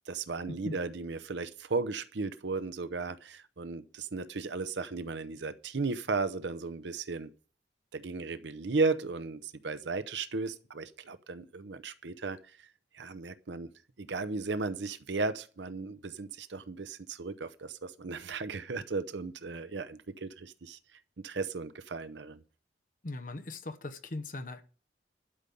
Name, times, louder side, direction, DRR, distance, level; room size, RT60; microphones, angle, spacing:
voice 1, 0.1-7.3 7.9-12.7 12.9-13.7 14.0-22.4, right 3 dB, 80° right, 0.7 m, -35 dB
voice 2, 23.0-24.6, left 2 dB, 45° left, 1.0 m, -39 dB
12.0 x 5.3 x 8.4 m
head